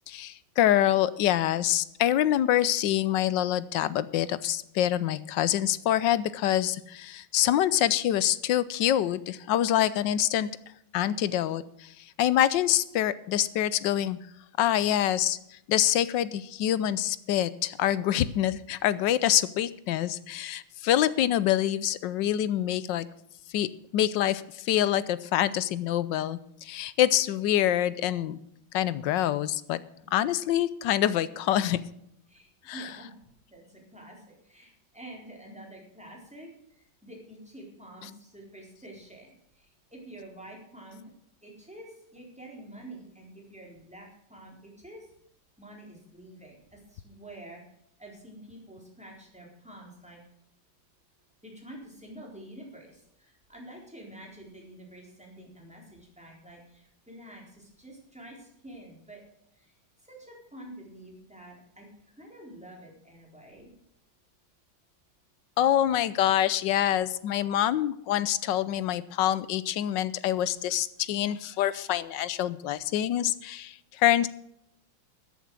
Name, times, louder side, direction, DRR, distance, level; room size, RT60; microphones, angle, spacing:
voice 1, 0.1-10.5 10.9-14.2 14.6-23.1 23.5-28.4 28.7-29.8 30.1-31.8 32.7-32.9 65.6-74.3, left 12 dB, 75° left, 16 dB, 1.3 m, -26 dB
voice 2, 32.3-33.1 33.5-36.5 36.8-41.0 41.4-45.1 45.6-47.6 48.0-50.2 51.4-59.2 59.5-59.7 60.0-61.9 62.2-63.7, right 1 dB, 5° right, -2 dB, 3.9 m, -48 dB
14.0 x 8.3 x 6.2 m, 0.75 s
omnidirectional pair, 2.1 m